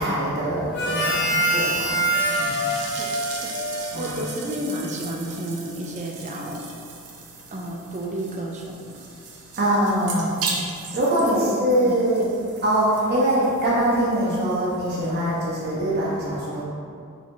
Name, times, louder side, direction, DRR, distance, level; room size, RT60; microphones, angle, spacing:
voice 1, 0.0-2.0 2.4-2.6 3.9-4.2 9.6-10.5 10.7-12.3 12.6-16.6, right 1 dB, 45° right, -7 dB, 1.1 m, -23 dB
Harmonica, 0.7-4.5, right 1 dB, 50° left, 0.9 m, -25 dB
sound 1, 1.5-15.7, right 4 dB, 75° right, 0.6 m, -38 dB
voice 2, 2.8-3.1 3.4-3.6 4.0-6.6 7.5-9.0 11.2-11.6 11.8-12.0, right 1 dB, 30° right, 0 dB, 0.4 m, -31 dB
4.0 x 3.4 x 3.0 m, 2.4 s
head